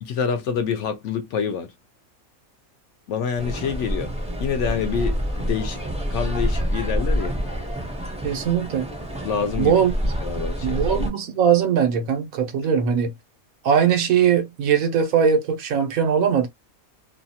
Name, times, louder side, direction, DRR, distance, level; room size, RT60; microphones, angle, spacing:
voice 1, 0.0-1.7 3.1-4.1 4.4-5.8 6.1-7.4 9.2-9.8 10.2-10.8, left 7 dB, 65° left, 0.8 m, -27 dB
sound 1, 3.4-11.1, equal, 5° right, 0.5 m, -27 dB
voice 2, 8.2-8.9 9.6-9.9 10.6-13.1 13.6-16.5, right 7 dB, 80° right, 1.2 m, -20 dB
2.8 x 2.3 x 2.7 m
omnidirectional pair, 1.5 m